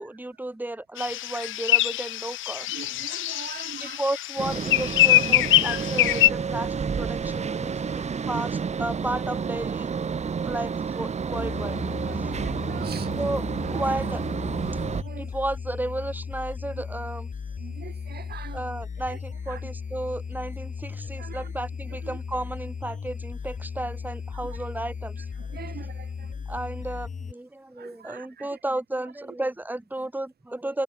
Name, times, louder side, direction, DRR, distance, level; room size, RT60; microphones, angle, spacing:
voice 1, 0.0-2.7 3.8-9.9 10.4-11.8 13.2-13.4 13.7-14.2 15.2-17.3 18.5-25.3 26.5-30.8, right 1 dB, 10° right, 2.8 m, -33 dB
sound 1, 1.0-6.3, left 15 dB, 80° left, 0.7 m, -23 dB
voice 2, 2.6-4.0 6.6-6.7 7.4-8.0 8.3-8.5 10.9-11.0 11.3-13.4 13.6-14.0 14.4-15.3 17.6-18.7 19.1-19.2 19.5-19.7 21.2-21.5 21.9-22.2 22.9-23.0 24.3-24.7 25.2-26.6 27.8-28.6, right 9 dB, 55° right, 1.4 m, -43 dB
sound 2, 4.4-15.0, right 6 dB, 35° right, 1.1 m, -30 dB
sound 3, 11.3-27.3, left 6 dB, 40° left, 3.3 m, -36 dB
cardioid pair, 90°, 20 cm